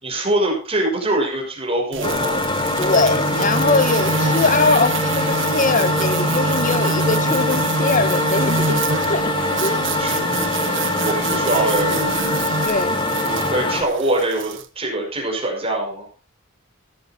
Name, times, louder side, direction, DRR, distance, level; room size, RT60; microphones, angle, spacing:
voice 1, 0.0-2.4 10.0-12.1 13.2-16.1, right 1 dB, 30° right, 5.6 m, -24 dB
sound 1, 1.9-14.6, right 4 dB, 65° right, 1.5 m, -26 dB
sound 2, 2.0-13.8, left 2 dB, 25° left, 1.7 m, -23 dB
voice 2, 2.8-9.4 9.6-9.8 12.6-13.0, left 3 dB, 40° left, 1.3 m, -21 dB
Piano, 3.1-5.5, right 3 dB, 75° left, 3.1 m, -38 dB
15.5 x 13.5 x 2.9 m
head